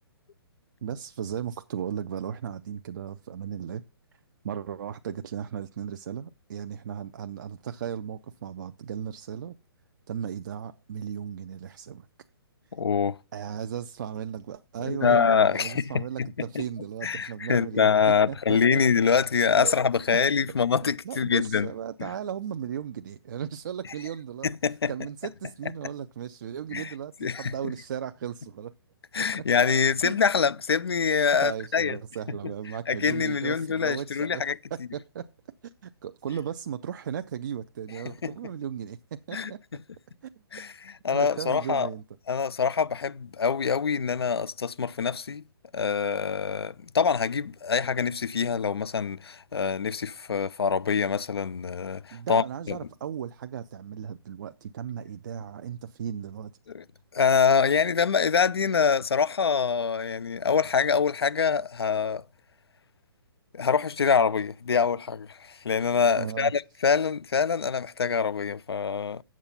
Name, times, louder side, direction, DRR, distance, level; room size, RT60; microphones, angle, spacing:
voice 1, 0.8-3.8 4.4-9.6 10.1-12.1 13.3-17.9 18.3-18.8 19.6-19.7 21.0-24.5 24.9-28.7 29.2-29.5 30.0-30.2 31.4-34.4 34.7-35.3 35.8-39.6 40.2-40.3 41.1-42.0 52.1-56.5 66.2-66.5, right 8 dB, 50° right, 0.5 m, -36 dB
voice 2, 12.7-13.2 14.8-16.3 16.5-16.6 17.0-21.7 22.0-22.1 24.4-24.9 26.7-26.9 27.2-27.5 29.1-32.0 32.9-34.6 38.0-38.3 39.3-39.5 40.5-41.9 42.3-45.4 45.7-52.8 56.7-56.8 57.1-62.2 63.5-69.2, left 6 dB, 75° left, 0.5 m, -25 dB
8.6 x 7.4 x 5.5 m
figure-of-eight pair, 130°, 13 cm